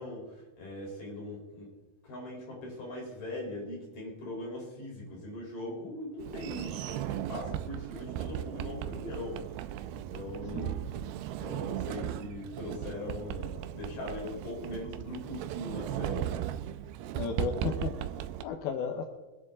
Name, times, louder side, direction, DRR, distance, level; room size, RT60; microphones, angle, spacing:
voice 1, 0.0-1.7 2.0-9.7 9.9-10.8 11.4-16.3, left 1 dB, 60° left, -2 dB, 5.7 m, -40 dB
Sliding door, 6.2-18.4, right 12 dB, 90° right, 2.5 m, -37 dB
sound 1, 6.4-7.9 8.3-8.4, right 8 dB, 65° right, 2.0 m, -47 dB
voice 2, 17.1-19.0, left 6 dB, 80° left, 3 dB, 2.9 m, -34 dB
24.0 x 9.5 x 3.8 m, 1.2 s
omnidirectional pair, 4.3 m